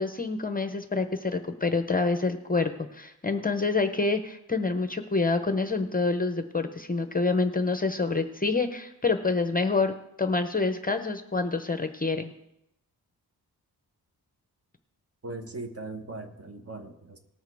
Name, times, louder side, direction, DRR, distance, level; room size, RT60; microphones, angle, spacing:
voice 1, 0.0-12.3, left 3 dB, 25° left, 7 dB, 0.7 m, -27 dB
voice 2, 15.2-17.2, right 2 dB, 40° right, 6 dB, 1.3 m, -39 dB
18.5 x 6.4 x 4.7 m, 0.83 s
wide cardioid pair, 110°, 38 cm